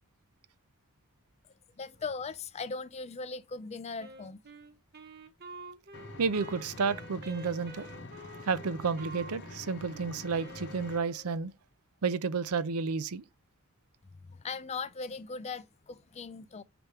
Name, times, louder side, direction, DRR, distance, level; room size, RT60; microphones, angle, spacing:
voice 1, 1.8-4.4 14.2-16.6, left 4 dB, 30° left, 0.4 m, -39 dB
Wind instrument woodwind instrument, 4.0-11.5, right 2 dB, 45° right, 1.1 m, -49 dB
Engine, 5.9-11.0, left 2 dB, 50° left, 0.9 m, -46 dB
voice 2, 6.2-7.9 8.4-11.5 12.0-13.2, right 5 dB, 75° right, 0.6 m, -31 dB
5.9 x 3.4 x 5.6 m
head